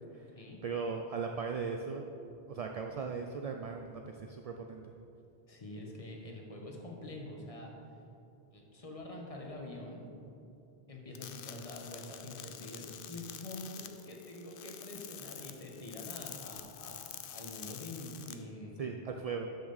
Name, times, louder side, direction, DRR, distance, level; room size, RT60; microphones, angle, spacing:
voice 1, 0.6-2.0 2.5-4.8 18.8-19.5, right 5 dB, 55° right, 3 dB, 0.4 m, -38 dB
voice 2, 5.5-7.7 8.5-10.1 10.9-18.9, left 1 dB, 35° left, -1 dB, 1.2 m, -46 dB
sound 1, 11.1-18.3, left 9 dB, 65° left, 0.7 m, -47 dB
12.5 x 5.9 x 4.1 m, 2.7 s
omnidirectional pair, 1.1 m